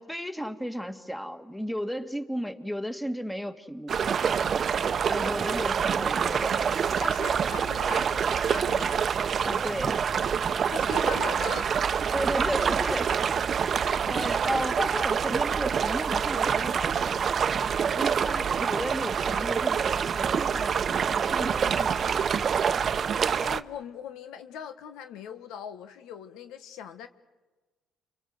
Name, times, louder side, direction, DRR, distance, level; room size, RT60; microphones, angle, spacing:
voice 1, 0.0-4.0 5.1-7.0 9.4-10.0 12.1-13.2 14.0-17.3 17.9-22.4, equal, 5° left, 8 dB, 2.2 m, -34 dB
sound 1, 3.9-23.6, right 7 dB, 50° right, 0.8 m, -26 dB
voice 2, 7.0-9.0 10.7-11.7 23.2-27.1, left 7 dB, 80° left, 9 dB, 1.4 m, -40 dB
29.5 x 25.0 x 7.9 m, 1.2 s
supercardioid pair, 70°, 0 cm